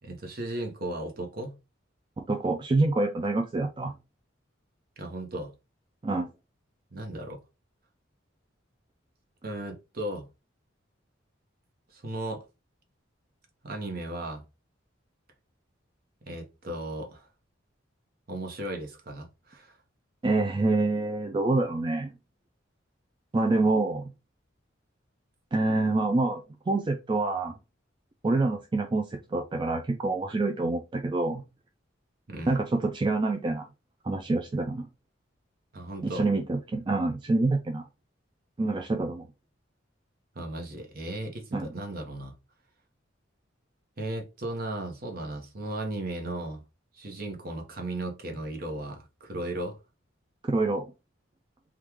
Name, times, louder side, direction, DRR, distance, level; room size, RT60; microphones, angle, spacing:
voice 1, 0.0-1.6 5.0-5.5 6.9-7.4 9.4-10.3 11.9-12.4 13.6-14.4 16.3-17.3 18.3-19.8 32.3-32.6 35.7-36.3 40.3-42.3 44.0-46.6 46.9-49.8, right 1 dB, 50° right, 0.9 m, -36 dB
voice 2, 2.3-3.9 6.0-6.3 20.2-22.1 23.3-24.0 25.5-27.5 28.2-31.4 32.5-33.7 34.0-34.9 36.0-37.9 38.6-39.3 41.5-41.7 50.5-50.9, right 2 dB, 25° right, 0.3 m, -26 dB
3.5 x 2.4 x 3.0 m
head